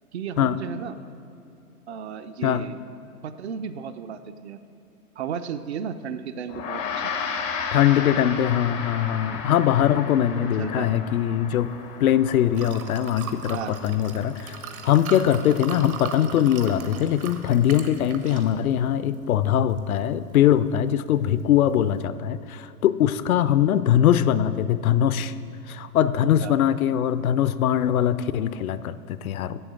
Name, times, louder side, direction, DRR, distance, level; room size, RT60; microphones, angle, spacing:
voice 1, 0.1-1.0 1.9-2.8 3.2-4.6 5.2-7.1 10.4-10.9 13.5-13.8 26.4-26.6, right 7 dB, 45° right, 10 dB, 0.5 m, -34 dB
Gong, 6.5-16.1, left 5 dB, 15° left, 0.4 m, -35 dB
voice 2, 7.7-11.7 12.0-13.6 13.8-14.6 14.8-25.3 25.7-29.6, left 10 dB, 65° left, 14 dB, 0.5 m, -22 dB
Liquid, 11.5-22.0, right 5 dB, 65° right, 1.2 m, -41 dB
7.8 x 7.4 x 7.5 m, 2.7 s
hypercardioid pair, 125°, 46 cm